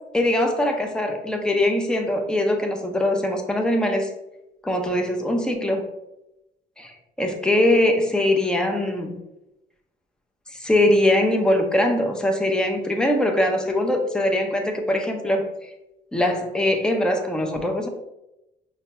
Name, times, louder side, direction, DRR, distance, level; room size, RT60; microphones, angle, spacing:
voice 1, 0.1-4.1 4.6-5.8 6.8-9.2 10.5-15.5 16.1-17.9, left 1 dB, 5° left, 2 dB, 0.5 m, -22 dB
4.9 x 2.2 x 2.8 m, 0.92 s
cardioid pair, 90°, 20 cm